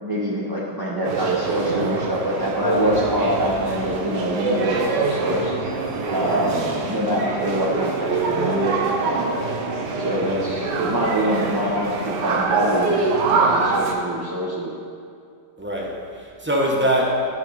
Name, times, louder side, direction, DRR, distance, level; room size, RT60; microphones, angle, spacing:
voice 1, 0.0-5.5 6.1-9.5 10.0-14.7, equal, 25° right, -6 dB, 0.5 m, -25 dB
sound 1, 1.0-13.9, right 4 dB, 85° right, 1.5 m, -24 dB
voice 2, 6.2-6.5 15.6-17.3, equal, 10° right, -2 dB, 0.9 m, -23 dB
11.5 x 5.3 x 5.4 m, 2.3 s
omnidirectional pair, 1.8 m